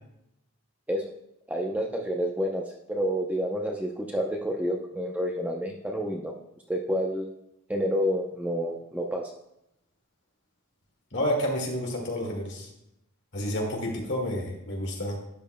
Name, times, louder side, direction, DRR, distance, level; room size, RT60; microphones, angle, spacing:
voice 1, 1.5-6.3 6.7-7.3 7.7-9.3, equal, 5° right, 0 dB, 0.6 m, -29 dB
voice 2, 11.1-12.7 13.3-15.2, equal, 50° left, 0 dB, 2.0 m, -30 dB
12.0 x 8.9 x 2.2 m, 0.83 s
head